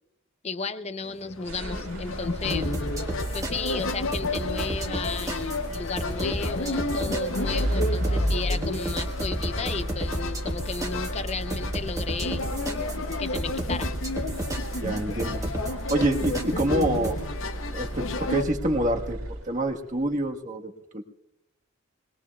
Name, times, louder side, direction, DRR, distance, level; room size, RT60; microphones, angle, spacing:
voice 1, 0.4-2.7 3.3-12.5 13.2-13.9, left 4 dB, 30° left, 11 dB, 0.7 m, -34 dB
sound 1, 1.0-18.5, left 3 dB, 65° left, 0.8 m, -33 dB
sound 2, 1.5-19.7, right 1 dB, 80° right, 2.4 m, -33 dB
sound 3, 2.5-17.2, right 1 dB, 15° right, 1.5 m, -33 dB
voice 2, 14.8-17.3 17.7-19.2 19.4-21.0, right 1 dB, 35° right, 2 dB, 1.4 m, -27 dB
22.5 x 21.0 x 2.3 m, 0.81 s
head